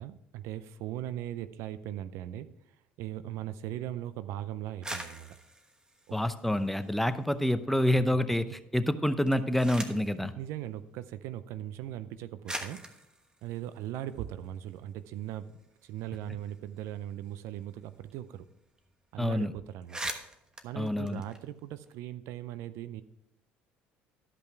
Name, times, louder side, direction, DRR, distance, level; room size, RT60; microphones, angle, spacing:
voice 1, 0.0-2.5 3.0-5.4 6.1-6.2 10.4-12.8 13.4-18.4 19.1-20.1 20.6-23.0, right 12 dB, 70° right, 14 dB, 0.5 m, -39 dB
sound 1, 4.7-7.2 7.6-8.3 9.1-10.2 11.2-11.3 12.0-12.1 12.4-14.8 15.1-15.2 15.5-18.1 18.4-18.5 18.8-19.0 19.4-19.5 19.7-21.9, right 1 dB, 15° right, 1.2 m, -43 dB
voice 2, 6.1-8.5 8.7-10.3 19.2-19.5 20.8-21.2, left 1 dB, 5° left, 11 dB, 0.7 m, -27 dB
12.5 x 5.5 x 4.6 m, 0.81 s
hypercardioid pair, 70°, 5 cm